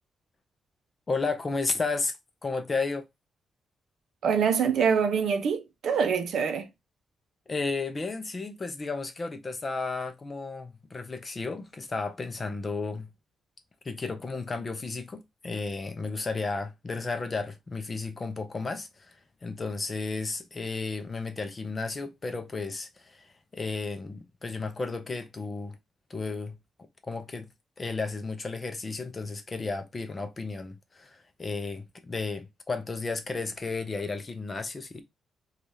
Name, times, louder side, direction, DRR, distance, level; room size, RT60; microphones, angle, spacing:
voice 1, 1.1-2.1 2.4-3.0 7.5-13.1 13.8-19.2 19.4-25.8 26.1-26.6 27.0-27.5 27.8-35.0, left 3 dB, 25° left, 0.5 m, -33 dB
voice 2, 4.2-6.7, right 6 dB, 60° right, 0.5 m, -25 dB
3.3 x 2.3 x 2.6 m
wide cardioid pair, 160°, 0 cm